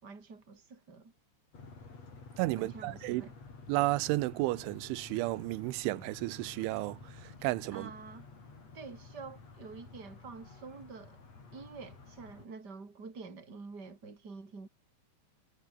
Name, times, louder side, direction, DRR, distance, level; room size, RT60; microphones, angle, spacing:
voice 1, 0.0-1.1 2.5-3.3 7.7-8.3 8.7-11.2 11.5-14.7, right 4 dB, 20° right, 4.9 m, -47 dB
sound 1, 1.5-12.5, left 4 dB, 35° left, 6.3 m, -52 dB
voice 2, 2.4-3.3 3.7-7.9, right 20 dB, 85° right, 3.1 m, -32 dB
omnidirectional pair, 5.5 m